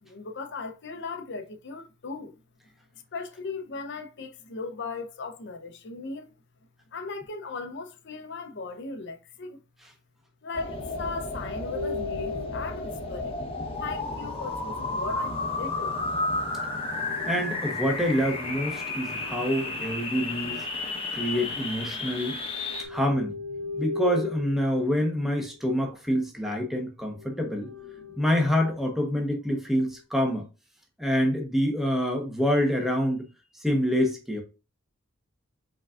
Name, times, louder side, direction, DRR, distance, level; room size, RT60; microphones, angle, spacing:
voice 1, 0.0-2.3 3.1-6.4 6.9-9.6 10.4-13.4 13.8-16.0, left 4 dB, 60° left, 0.7 m, -37 dB
sound 1, 10.5-22.8, left 2 dB, 30° left, 1.0 m, -32 dB
sound 2, 11.7-14.9 16.6-21.7 22.1-26.6 27.0-28.8 29.5-30.0, left 3 dB, 85° right, 2.4 m, -41 dB
voice 2, 17.3-20.6 21.1-22.4 22.9-23.4 23.8-27.7 28.2-30.5 31.0-33.3 33.6-34.4, equal, ahead, 1.0 m, -26 dB
5.5 x 3.8 x 2.4 m
head